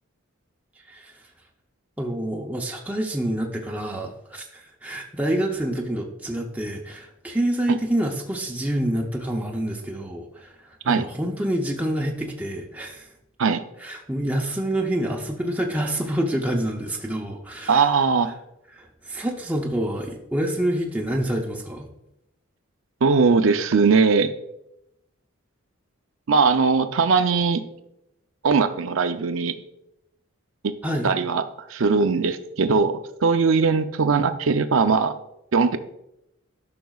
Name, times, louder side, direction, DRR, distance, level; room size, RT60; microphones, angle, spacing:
voice 1, 0.9-1.2 2.0-13.1 13.8-18.0 18.7-21.9 30.8-31.1, right 1 dB, 5° right, -1 dB, 0.7 m, -27 dB
voice 2, 17.7-18.3 23.0-24.3 26.3-27.6 28.4-29.5 30.6-30.7 31.0-31.4 31.7-35.2 35.5-35.8, right 4 dB, 70° right, 10 dB, 0.5 m, -20 dB
13.0 x 6.0 x 2.4 m, 0.84 s
head